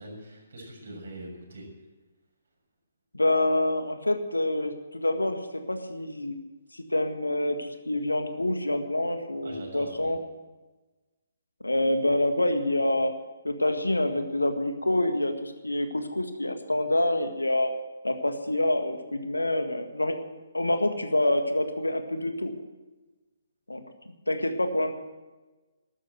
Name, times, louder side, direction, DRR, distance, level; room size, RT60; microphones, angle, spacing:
voice 1, 0.0-1.6 9.4-10.1, right 1 dB, 55° right, -1 dB, 6.9 m, -42 dB
voice 2, 3.1-6.4 6.7-10.2 11.6-13.1 13.4-17.7 18.0-20.2 20.5-22.5 23.7-24.9, left 1 dB, 80° left, 7 dB, 1.7 m, -27 dB
14.0 x 12.0 x 7.9 m, 1.2 s
figure-of-eight pair, 135°, 0 cm